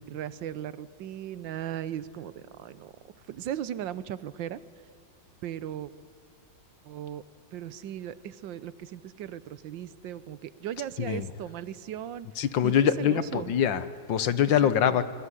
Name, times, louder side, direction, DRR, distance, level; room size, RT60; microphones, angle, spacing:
voice 1, 0.1-2.9 3.3-4.6 5.4-5.9 6.8-7.2 7.5-12.3 12.6-13.5 14.6-15.0, right 10 dB, 80° right, 16 dB, 1.6 m, -37 dB
voice 2, 12.4-15.1, left 9 dB, 80° left, 13 dB, 1.8 m, -24 dB
26.5 x 21.5 x 10.0 m, 2.4 s
omnidirectional pair, 2.0 m